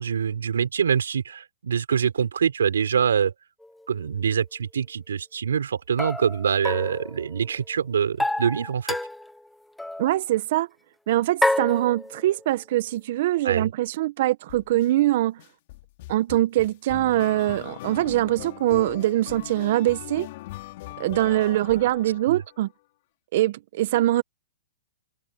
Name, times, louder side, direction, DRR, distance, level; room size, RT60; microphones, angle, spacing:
voice 1, 0.0-3.3 3.9-9.0 13.4-13.7 22.3-22.4, right 7 dB, 85° right, 5.3 m, -25 dB
sound 1, 3.6-3.7 6.0-7.6 8.2-9.4 9.8-10.1 11.4-12.4, left 1 dB, 5° left, 0.9 m, -28 dB
voice 2, 10.0-10.7 11.1-15.4 16.1-20.3 21.0-22.7 23.3-24.2, right 15 dB, 55° right, 1.0 m, -23 dB
sound 2, 14.5-14.9 15.4-22.6, left 18 dB, 50° left, 3.8 m, -40 dB
hypercardioid pair, 135°, 0 cm